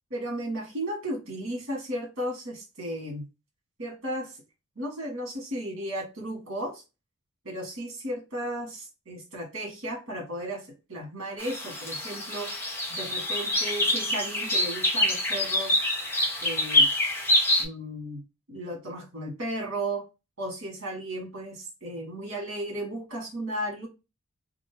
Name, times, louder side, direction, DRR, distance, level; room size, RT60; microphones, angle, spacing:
voice 1, 0.1-3.3 3.8-4.4 4.7-6.8 7.4-12.6 12.9-15.8 16.4-16.9 17.6-18.2 18.5-20.0 20.4-23.9, right 1 dB, 60° right, 1.5 m, -34 dB
sound 1, 11.4-17.6, left 1 dB, 10° left, 0.7 m, -26 dB
2.8 x 2.6 x 3.2 m
head